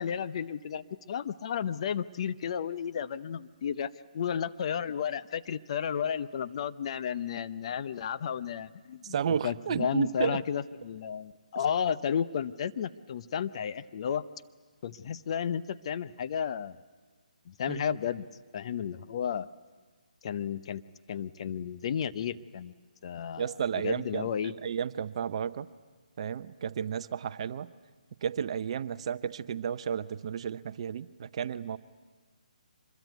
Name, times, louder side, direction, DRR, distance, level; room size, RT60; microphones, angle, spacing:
voice 1, 0.0-14.3 14.8-16.8 17.5-18.3 18.5-19.5 20.2-20.8 21.1-22.7 23.0-24.5, left 8 dB, 45° left, 12 dB, 0.7 m, -33 dB
voice 2, 9.0-10.4 17.7-18.0 23.4-25.7 26.2-27.7 28.2-31.8, right 8 dB, 45° right, 14 dB, 0.7 m, -32 dB
25.0 x 22.0 x 9.3 m, 1.4 s
figure-of-eight pair, 145°, 4 cm